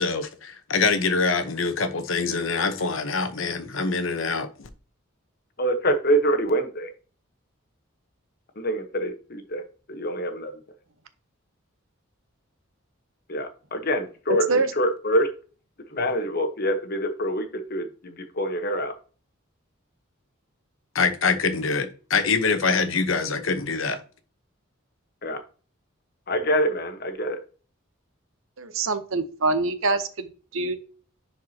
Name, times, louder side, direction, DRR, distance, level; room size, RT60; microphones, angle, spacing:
voice 1, 0.0-4.7 20.9-24.0, left 4 dB, 70° left, 1.0 m, -24 dB
voice 2, 5.6-6.9 8.6-9.6 9.9-10.5 13.3-15.3 15.9-18.9 25.2-25.4 26.3-27.4, equal, 45° left, 1.1 m, -25 dB
voice 3, 28.6-30.8, right 3 dB, 75° right, 0.9 m, -25 dB
10.5 x 4.6 x 2.8 m
head